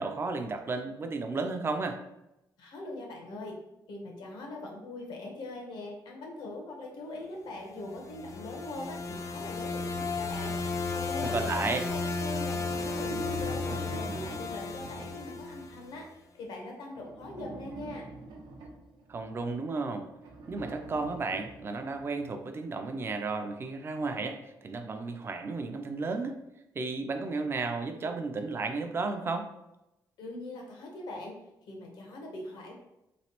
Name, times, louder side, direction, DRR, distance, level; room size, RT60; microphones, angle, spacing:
voice 1, 0.0-2.0 11.2-11.8 19.1-20.1 20.5-26.4 26.8-29.5, right 3 dB, 30° right, 6 dB, 0.4 m, -33 dB
voice 2, 2.6-3.6 3.9-16.1 16.3-18.0 30.2-31.4 31.7-32.7, left 2 dB, 80° left, 1 dB, 0.8 m, -41 dB
sound 1, 7.8-16.0, left 4 dB, 40° left, 0.3 m, -34 dB
sound 2, 10.2-11.8 12.3-15.4 16.9-19.5 20.2-22.1, right 3 dB, 75° right, 0.6 m, -44 dB
3.2 x 3.1 x 2.9 m, 0.90 s
cardioid pair, 150°, 8 cm